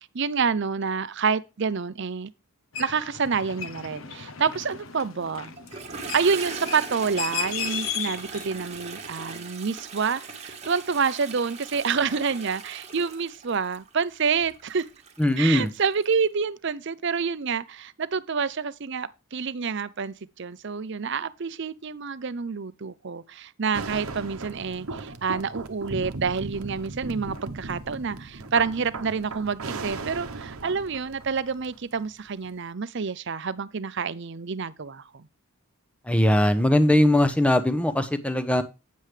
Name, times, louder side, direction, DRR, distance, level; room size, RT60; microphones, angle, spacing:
voice 1, 0.1-2.3 2.8-5.5 6.1-14.8 15.4-35.2, right 5 dB, 55° right, 0.6 m, -28 dB
sound 1, 2.7-8.5, left 8 dB, 65° left, 0.8 m, -35 dB
Toilet flush, 5.6-16.1, right 4 dB, 30° right, 1.3 m, -40 dB
voice 2, 15.2-15.7 36.1-38.6, left 1 dB, 5° left, 0.8 m, -20 dB
sound 2, 23.7-31.9 32.4-32.5, right 3 dB, 85° right, 1.0 m, -37 dB
9.3 x 7.5 x 3.3 m
head